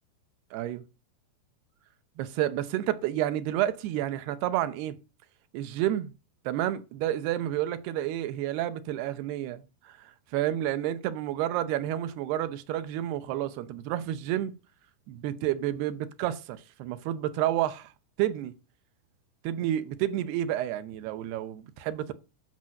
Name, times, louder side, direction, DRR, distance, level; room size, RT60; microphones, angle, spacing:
voice 1, 0.5-0.8 2.2-5.0 5.5-6.1 6.5-14.5 15.1-17.9 18.2-18.5 19.4-22.1, right 12 dB, 75° right, 2.7 m, -30 dB
12.5 x 6.1 x 6.4 m
omnidirectional pair, 4.9 m